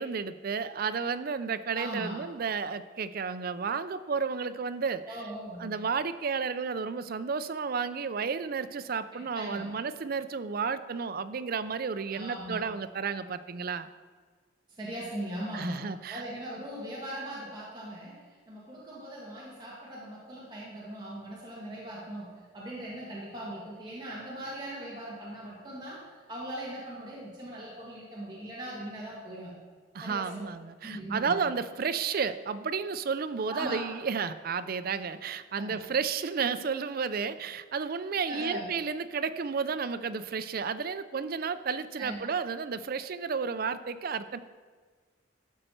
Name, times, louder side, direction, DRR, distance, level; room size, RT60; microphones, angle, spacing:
voice 1, 0.0-5.0 5.6-13.9 15.5-16.2 29.9-44.4, right 5 dB, 50° right, 13 dB, 0.4 m, -32 dB
voice 2, 1.7-2.2 5.1-5.7 9.1-9.7 12.1-12.7 14.8-26.0 26.3-29.6 30.0-30.5 30.8-31.4 33.5-33.8 35.5-35.8 38.3-38.7 42.0-42.3, right 1 dB, 25° right, -6 dB, 1.8 m, -40 dB
12.0 x 6.5 x 4.5 m, 1.5 s
head